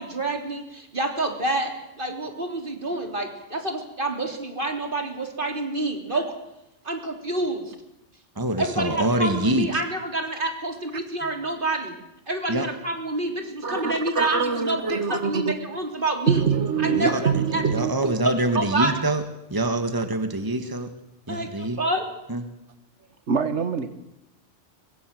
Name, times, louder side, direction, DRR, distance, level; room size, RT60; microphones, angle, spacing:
voice 1, 0.0-1.7 2.0-3.6 4.0-6.2 6.8-7.7 8.6-11.9 12.3-14.8 15.1-16.4 16.8-17.2 17.5-17.6 18.5-18.9 21.3-22.0, right 2 dB, 50° right, 4 dB, 3.8 m, -27 dB
voice 2, 8.3-9.8 12.5-12.7 16.9-19.2 19.5-20.9 21.3-21.8 22.3-22.4, right 1 dB, 20° right, 8 dB, 1.8 m, -25 dB
voice 3, 13.6-15.5 16.3-18.2 23.3-23.9, right 6 dB, 80° right, 9 dB, 1.7 m, -24 dB
24.0 x 23.0 x 7.8 m, 0.87 s
omnidirectional pair, 1.2 m